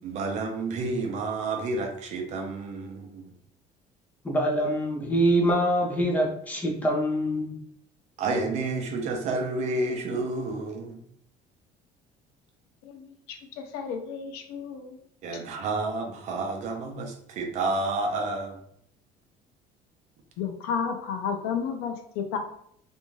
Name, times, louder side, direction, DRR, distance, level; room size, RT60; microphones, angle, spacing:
voice 1, 0.0-3.3 8.2-11.0 15.2-18.6, right 3 dB, 45° right, 3 dB, 0.5 m, -30 dB
voice 2, 4.2-7.5, right 1 dB, 10° left, -1 dB, 0.5 m, -24 dB
voice 3, 13.6-15.0 20.4-22.4, left 6 dB, 90° left, 4 dB, 0.5 m, -31 dB
2.6 x 2.2 x 3.0 m, 0.67 s
cardioid pair, 160°, 16 cm